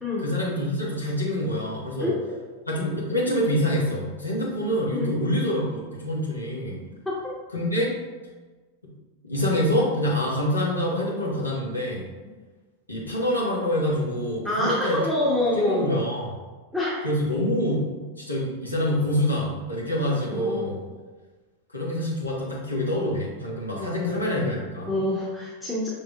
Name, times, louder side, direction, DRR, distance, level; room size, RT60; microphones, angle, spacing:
voice 1, 0.2-2.1 2.7-6.8 7.5-7.9 8.8-8.9 9.2-12.0 12.9-15.0 15.6-16.3 17.0-17.9 18.2-20.8 21.7-25.0, equal, 85° left, -4 dB, 1.1 m, -26 dB
voice 2, 2.0-2.3 4.9-5.1 7.0-7.1 14.4-16.0 16.7-17.1 20.3-20.8 23.7-24.5 24.9-25.9, left 1 dB, 5° left, -7 dB, 0.8 m, -27 dB
5.5 x 3.6 x 2.3 m, 1.3 s
figure-of-eight pair, 90°, 0 cm